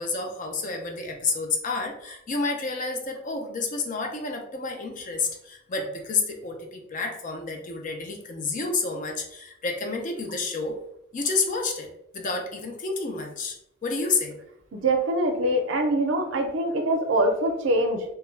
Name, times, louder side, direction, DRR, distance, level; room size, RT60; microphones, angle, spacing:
voice 1, 0.0-10.8 11.1-11.9 12.1-13.6 13.8-14.4, left 4 dB, 40° left, 3 dB, 0.4 m, -29 dB
voice 2, 14.7-18.0, right 1 dB, 80° right, 4 dB, 0.5 m, -24 dB
2.2 x 2.1 x 3.1 m, 0.77 s
head